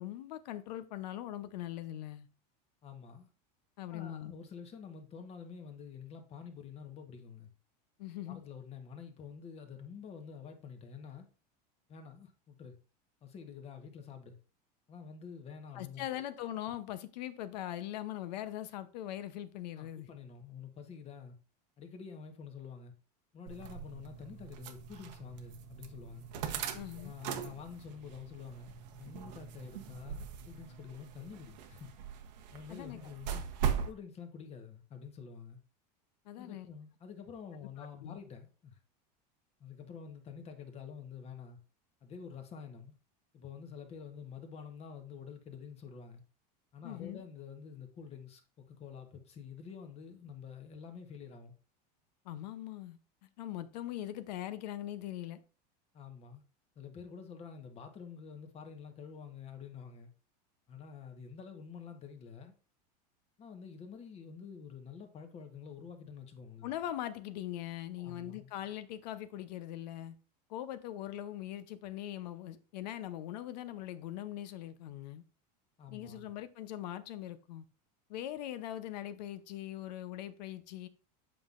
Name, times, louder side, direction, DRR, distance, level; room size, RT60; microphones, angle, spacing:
voice 1, 0.0-2.3 3.8-4.3 8.0-8.4 15.7-20.1 26.7-27.1 32.7-33.0 33.3-33.4 36.3-36.7 37.8-38.2 46.8-47.2 52.2-53.0 53.4-55.4 66.6-70.1 70.5-75.2 75.9-77.7 78.1-80.9, left 12 dB, 85° left, 0.8 m, -41 dB
voice 2, 2.8-3.3 3.9-7.5 8.2-11.3 11.9-12.8 13.2-14.4 14.9-16.2 19.8-21.3 21.8-22.9 23.3-26.3 26.9-28.7 29.0-31.9 32.5-33.3 33.8-35.6 36.4-38.8 39.6-41.6 42.0-42.9 43.3-46.2 46.7-51.5 55.9-56.4 56.7-60.1 60.7-62.5 63.4-66.7 68.0-68.5 75.8-76.3, left 6 dB, 30° left, 1.1 m, -48 dB
sound 1, 23.5-33.9, right 8 dB, 85° right, 1.0 m, -40 dB
7.7 x 5.4 x 2.5 m
supercardioid pair, 140°, 21 cm